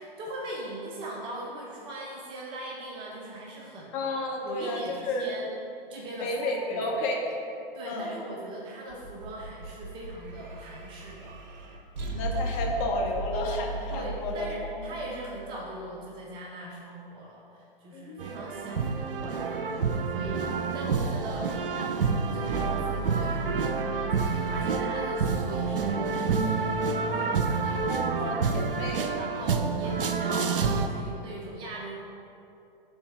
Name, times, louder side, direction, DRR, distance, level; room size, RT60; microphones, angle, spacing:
voice 1, 0.0-4.0 4.4-5.5 5.9-6.9 7.7-11.4 13.9-21.5 22.2-28.0 28.2-28.4 29.2-32.0, right 1 dB, 15° right, -3 dB, 0.5 m, -40 dB
voice 2, 3.9-5.2 6.2-7.4 7.9-8.2 12.0-14.5 17.9-18.2 28.2-29.2, left 2 dB, 25° left, 0 dB, 0.7 m, -31 dB
sound 1, 8.9-16.2 22.4-26.5, right 2 dB, 50° right, 0.9 m, -38 dB
sound 2, 18.2-30.9, right 5 dB, 70° right, 0.5 m, -28 dB
5.3 x 3.9 x 5.5 m, 2.6 s
figure-of-eight pair, 110°, 29 cm